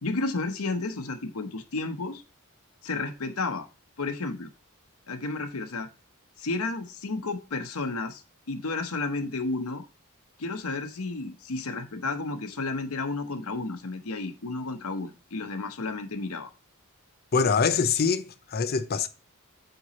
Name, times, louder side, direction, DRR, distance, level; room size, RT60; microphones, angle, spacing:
voice 1, 0.0-2.2 2.8-3.7 4.0-4.5 5.1-5.9 6.4-8.2 8.5-9.8 10.4-16.5, left 3 dB, 80° left, 1.0 m, -32 dB
voice 2, 17.3-19.1, left 5 dB, 45° left, 0.5 m, -24 dB
7.9 x 2.9 x 4.2 m
head